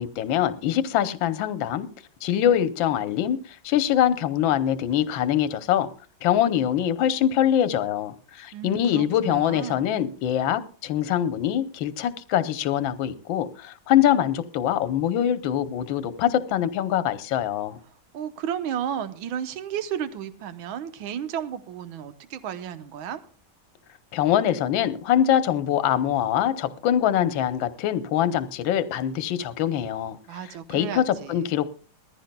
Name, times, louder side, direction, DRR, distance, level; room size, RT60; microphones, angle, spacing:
voice 1, 0.0-1.9 2.2-5.9 6.2-17.8 24.1-30.2 30.7-31.7, left 10 dB, 70° left, 1.5 m, -23 dB
voice 2, 8.5-10.0 18.1-23.2 30.3-31.6, right 9 dB, 75° right, 1.6 m, -33 dB
21.0 x 14.5 x 2.2 m
omnidirectional pair, 2.3 m